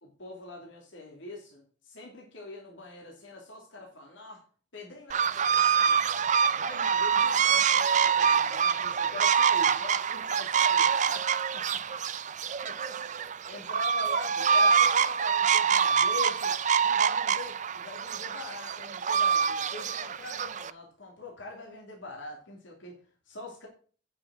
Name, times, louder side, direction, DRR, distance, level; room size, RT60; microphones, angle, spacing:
voice 1, 0.0-4.4 4.7-6.0 6.5-11.3 11.7-12.0 12.3-16.5 16.8-22.9 23.3-23.7, left 3 dB, 80° left, -1 dB, 2.8 m, -44 dB
sound 1, 5.1-20.7, right 7 dB, 40° right, 0.5 m, -25 dB
9.2 x 6.7 x 6.2 m, 0.41 s
head